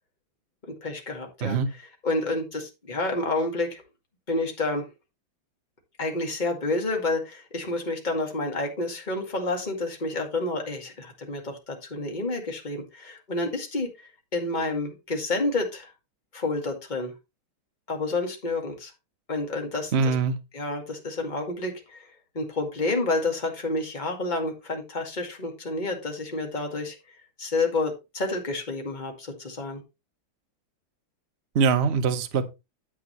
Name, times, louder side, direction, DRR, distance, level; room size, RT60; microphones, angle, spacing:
voice 1, 0.8-1.6 2.0-3.8 4.3-4.9 6.0-15.9 16.3-17.1 17.9-18.9 19.3-20.2 20.5-27.0 27.4-29.8, left 2 dB, 20° left, 2.2 m, -29 dB
voice 2, 19.9-20.4 31.5-32.4, right 5 dB, 45° right, 1.0 m, -22 dB
9.9 x 7.9 x 3.2 m
omnidirectional pair, 2.2 m